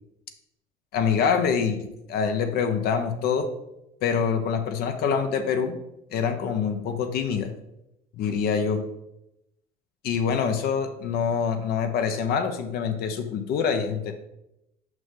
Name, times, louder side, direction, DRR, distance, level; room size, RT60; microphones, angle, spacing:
voice 1, 0.9-3.5 4.0-5.8 6.1-7.5 8.2-8.8 10.0-14.1, left 6 dB, 60° left, 7 dB, 0.7 m, -25 dB
6.1 x 5.4 x 3.7 m, 0.87 s
cardioid pair, 140°, 18 cm